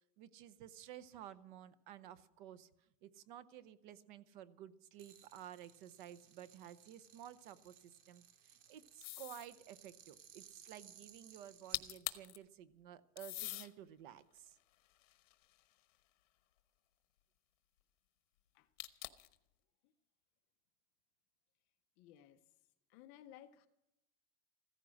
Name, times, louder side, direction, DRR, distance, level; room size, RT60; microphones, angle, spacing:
voice 1, 0.2-2.7 3.0-14.6, right 11 dB, 40° right, 15 dB, 0.7 m, -54 dB
sound 1, 5.0-11.9, right 9 dB, 75° right, 2.1 m, -62 dB
sound 2, 9.0-9.5 11.5-11.6 11.7-12.4 13.2-13.7 14.4-15.8 18.8-19.4, left 17 dB, 85° left, 1.2 m, -44 dB
voice 2, 22.0-22.4 22.9-23.7, left 11 dB, 25° left, 9 dB, 0.5 m, -58 dB
15.5 x 14.5 x 6.3 m, 0.84 s
supercardioid pair, 180°, 37 cm